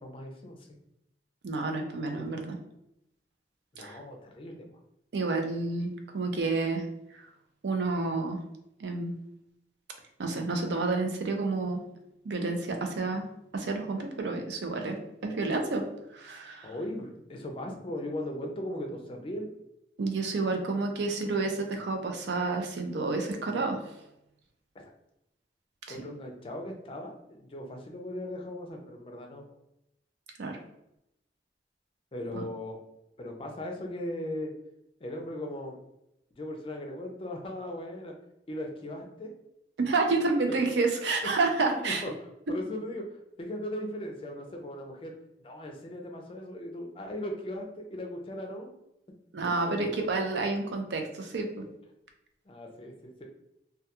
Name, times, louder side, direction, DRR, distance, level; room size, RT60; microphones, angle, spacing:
voice 1, 0.0-0.8 2.1-2.2 3.7-4.7 16.6-19.5 25.9-29.4 32.1-32.8 33.2-34.5 35.0-35.8 36.4-38.1 38.5-39.3 41.7-45.1 45.4-48.7 52.5-53.2, left 1 dB, 30° left, 2 dB, 0.4 m, -38 dB
voice 2, 1.4-2.6 3.8-4.0 5.1-6.9 7.6-8.4 8.8-9.2 10.2-11.8 12.2-13.3 13.5-15.0 15.2-15.9 16.1-16.7 20.0-24.0 25.9-26.0 30.4-30.6 32.3-32.4 39.8-42.0 49.3-51.6, right 3 dB, 85° right, 4 dB, 0.4 m, -29 dB
2.2 x 2.2 x 2.8 m, 0.83 s
head